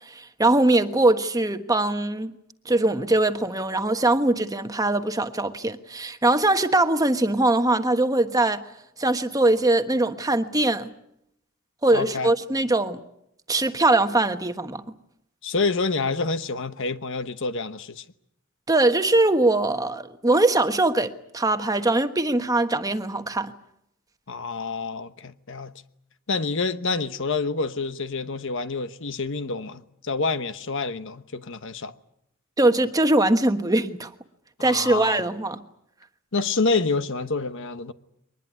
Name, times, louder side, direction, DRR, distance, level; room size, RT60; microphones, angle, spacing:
voice 1, 0.1-2.3 2.6-8.6 9.0-10.9 11.8-13.0 13.5-14.8 18.7-23.5 32.6-34.1 34.6-35.6, right 2 dB, 15° right, 1.3 m, -22 dB
voice 2, 11.9-12.3 15.4-18.0 24.3-25.7 26.3-31.9 34.6-35.2 36.3-37.9, left 4 dB, 60° left, 1.1 m, -27 dB
23.0 x 20.0 x 9.6 m
head